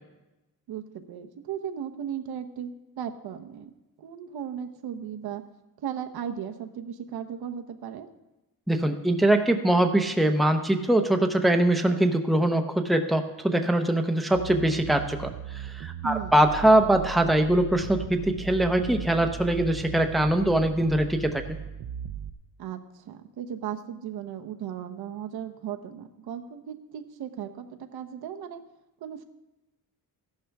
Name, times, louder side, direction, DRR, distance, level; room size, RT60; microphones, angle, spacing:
voice 1, 0.7-2.7 3.0-3.7 4.0-5.4 5.8-8.1 16.0-16.4 22.6-22.8 23.0-28.6 29.0-29.2, right 9 dB, 90° right, 6 dB, 1.0 m, -36 dB
voice 2, 8.7-21.4, right 1 dB, ahead, 5 dB, 0.6 m, -22 dB
sound 1, 14.3-22.3, right 10 dB, 65° right, 0.6 m, -38 dB
14.5 x 11.5 x 3.5 m, 0.99 s
wide cardioid pair, 175°, 37 cm